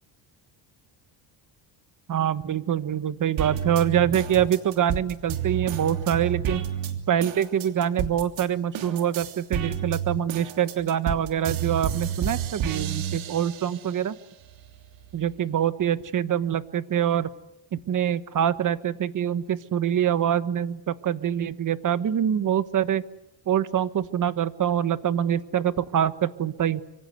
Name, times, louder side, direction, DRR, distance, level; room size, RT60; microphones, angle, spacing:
voice 1, 2.1-6.6 7.1-14.1 15.1-17.3 17.7-23.0 23.5-26.8, right 9 dB, 45° right, 13 dB, 1.2 m, -25 dB
sound 1, 3.4-8.5 8.7-13.9 14.4-15.4, right 9 dB, 85° right, 3.3 m, -30 dB
25.5 x 25.0 x 8.0 m, 0.89 s
cardioid pair, 125°, 45 cm